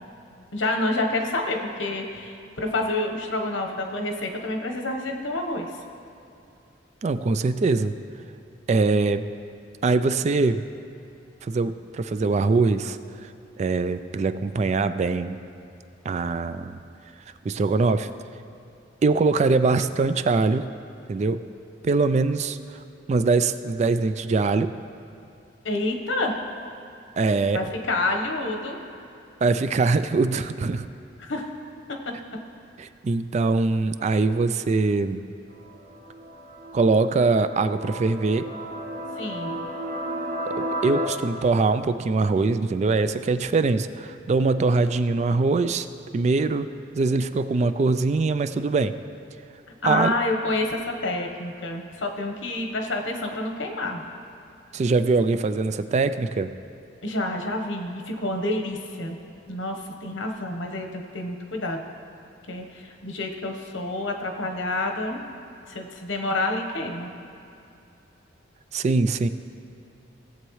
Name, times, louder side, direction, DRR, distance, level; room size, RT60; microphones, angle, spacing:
voice 1, 0.5-5.7 25.6-26.4 27.5-28.8 31.2-31.5 39.2-39.6 49.8-54.0 57.0-59.2 59.5-61.8 62.5-65.2 65.7-67.1, left 2 dB, 85° left, 3 dB, 1.1 m, -28 dB
voice 2, 7.0-7.9 8.7-9.2 9.8-10.6 11.4-13.0 13.6-15.4 16.1-16.8 17.4-18.1 19.0-20.7 21.1-21.4 21.8-22.6 23.1-24.7 27.2-27.6 29.4-30.9 32.8-35.2 36.7-38.5 40.4-45.9 46.1-48.9 49.8-50.1 54.7-56.5 68.7-69.3, right 3 dB, 35° right, 11 dB, 0.3 m, -22 dB
sound 1, 35.5-41.1, right 1 dB, 80° right, 1.5 m, -33 dB
17.0 x 7.8 x 3.2 m, 2.7 s
head